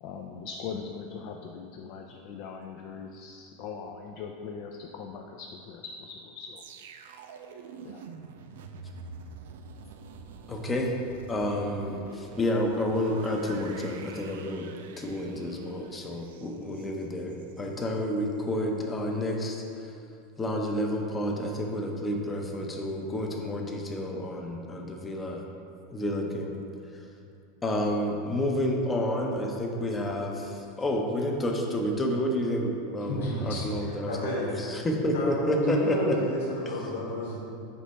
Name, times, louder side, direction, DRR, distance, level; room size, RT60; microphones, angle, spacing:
voice 1, 0.0-6.6 7.8-8.0, left 5 dB, 45° left, 2 dB, 0.4 m, -40 dB
sound 1, 6.6-17.7 18.0-18.2, right 5 dB, 85° right, 0.4 m, -46 dB
voice 2, 10.5-10.9 11.3-14.7 15.0-19.9 20.4-25.4 25.9-26.5 27.6-34.3 34.6-36.2, left 1 dB, 10° left, 1 dB, 0.7 m, -30 dB
voice 3, 33.1-34.7 35.1-37.4, left 1 dB, 80° left, -6 dB, 1.6 m, -31 dB
8.2 x 3.3 x 5.4 m, 2.5 s
supercardioid pair, 160°, 0 cm